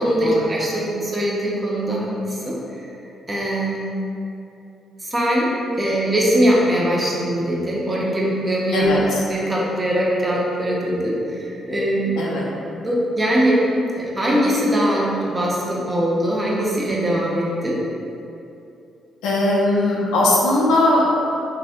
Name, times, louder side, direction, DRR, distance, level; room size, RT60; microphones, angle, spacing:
voice 1, 0.0-2.5 3.3-3.9 5.0-5.5 5.8-8.9 9.3-12.1 12.8-13.6 14.0-17.8, equal, 30° right, -5 dB, 0.7 m, -21 dB
voice 2, 8.7-9.2 12.2-12.4 19.2-21.1, left 2 dB, 80° left, -4 dB, 0.5 m, -19 dB
3.1 x 2.3 x 2.5 m, 2.6 s
supercardioid pair, 55°, 0 cm